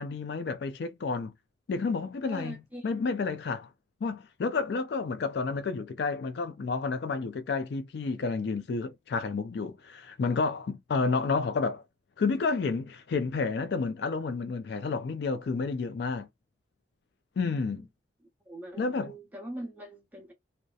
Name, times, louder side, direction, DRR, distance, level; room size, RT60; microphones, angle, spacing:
voice 1, 0.0-1.3 1.7-2.6 2.8-3.7 4.0-11.8 12.2-16.3 17.4-17.9 18.8-19.1, left 4 dB, 55° left, 0.3 m, -30 dB
voice 2, 2.2-2.8 17.5-17.9 18.5-20.3, right 1 dB, 10° right, 0.8 m, -42 dB
2.7 x 2.0 x 2.3 m
head